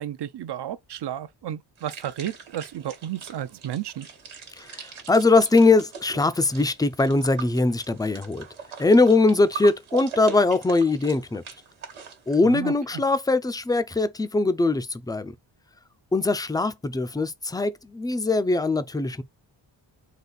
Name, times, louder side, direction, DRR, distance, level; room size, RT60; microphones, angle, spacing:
voice 1, 0.0-4.1 12.4-13.0, right 11 dB, 60° right, 0.6 m, -33 dB
sound 1, 1.8-12.4, right 7 dB, 85° right, 1.3 m, -41 dB
voice 2, 4.6-8.5 8.8-11.4 12.3-15.3 16.1-19.2, left 3 dB, 10° left, 0.4 m, -21 dB
4.1 x 2.5 x 3.9 m
wide cardioid pair, 85°, 47 cm